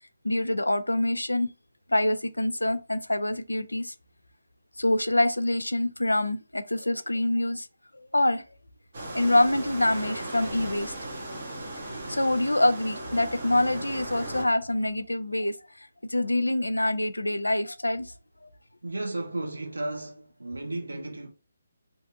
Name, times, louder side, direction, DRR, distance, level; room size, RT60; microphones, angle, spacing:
voice 1, 0.2-1.5 1.9-3.9 4.8-7.7 8.1-8.4 9.1-10.9 12.1-15.5 16.0-18.1 18.4-18.5, left 1 dB, 85° left, 0.3 m, -25 dB
sound 1, 8.9-14.4, right 1 dB, 50° right, 1.0 m, -37 dB
voice 2, 18.8-21.3, right 2 dB, 75° right, 0.7 m, -34 dB
2.7 x 2.4 x 2.6 m
figure-of-eight pair, 145°, 0 cm